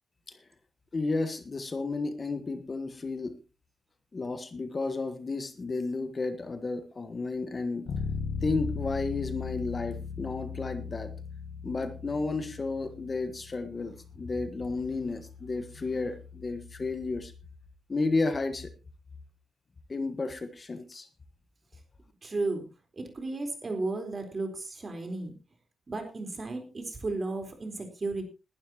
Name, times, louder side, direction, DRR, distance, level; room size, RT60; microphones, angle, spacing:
voice 1, 0.9-3.4 4.1-7.9 8.4-11.1 11.6-17.3 17.9-18.7 19.9-21.1, left 3 dB, 30° left, 9 dB, 1.3 m, -32 dB
Bass guitar, 7.9-17.6, left 5 dB, 90° left, 1.8 m, -39 dB
voice 2, 22.2-22.6 23.0-25.3 25.9-28.2, right 3 dB, 30° right, 5 dB, 4.0 m, -34 dB
20.0 x 11.5 x 2.9 m, 0.30 s
wide cardioid pair, 135°, 0 cm